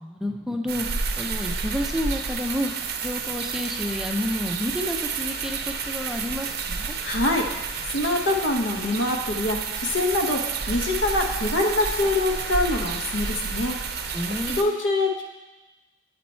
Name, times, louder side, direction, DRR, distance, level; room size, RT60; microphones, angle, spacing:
voice 1, 0.0-2.7 3.0-6.9 14.1-14.6, left 1 dB, 5° right, 3 dB, 0.4 m, -30 dB
sound 1, 0.7-14.6, right 5 dB, 55° right, 0.5 m, -30 dB
voice 2, 7.0-7.5 7.8-13.8 14.5-15.2, left 2 dB, 90° left, 2 dB, 0.9 m, -24 dB
8.3 x 4.4 x 4.2 m, 1.1 s
head